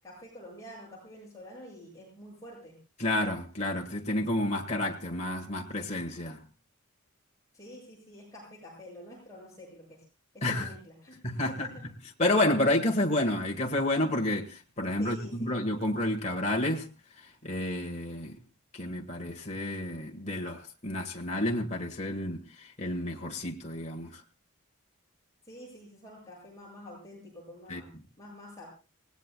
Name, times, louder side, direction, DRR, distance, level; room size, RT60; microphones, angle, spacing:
voice 1, 0.0-2.8 7.5-10.0 10.3-11.8 15.0-15.5 25.4-27.9 28.2-28.7, equal, 15° left, 7.5 m, -48 dB
voice 2, 3.0-6.4 10.4-10.7 11.2-11.7 12.2-16.9 17.4-18.4 18.7-24.2 27.7-27.8, left 1 dB, 30° left, 1.6 m, -30 dB
27.0 x 18.5 x 2.3 m
head